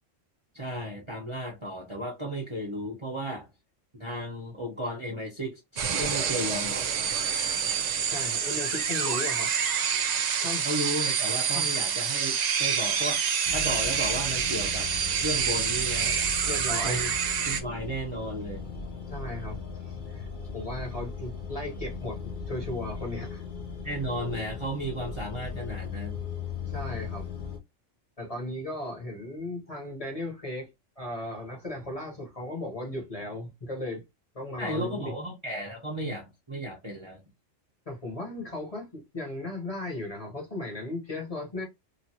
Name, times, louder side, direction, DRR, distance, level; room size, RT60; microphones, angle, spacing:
voice 1, 0.5-3.5 3.9-6.9 10.6-14.9 15.2-16.2 16.8-17.1 17.5-18.7 23.8-26.2 34.6-37.2, equal, 30° right, 0.7 m, -34 dB
sound 1, 5.8-17.6, right 7 dB, 70° right, 0.4 m, -27 dB
voice 2, 8.1-9.5 9.9-10.0 10.4-10.7 11.5-11.8 16.5-17.1 19.1-19.6 19.9-20.3 20.5-23.4 26.7-27.3 28.2-30.7 31.0-34.0 34.3-35.1 37.9-41.6, left 1 dB, 30° left, 1.1 m, -36 dB
sound 2, 13.4-27.6, left 4 dB, 50° left, 0.7 m, -38 dB
3.0 x 2.4 x 2.7 m
omnidirectional pair, 1.3 m